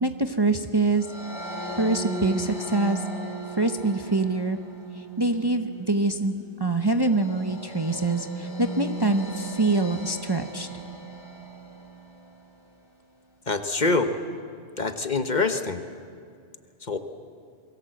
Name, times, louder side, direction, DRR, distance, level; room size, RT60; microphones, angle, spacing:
voice 1, 0.0-1.1 1.8-3.0 3.6-4.6 5.2-10.7, right 2 dB, 25° right, 7 dB, 0.9 m, -24 dB
sound 1, 1.0-12.3, right 2 dB, 25° left, 3.8 m, -37 dB
voice 2, 13.5-14.1 14.8-15.8 16.9-17.0, left 3 dB, 40° left, 8 dB, 1.2 m, -25 dB
28.5 x 22.0 x 7.9 m, 2.3 s
omnidirectional pair, 1.1 m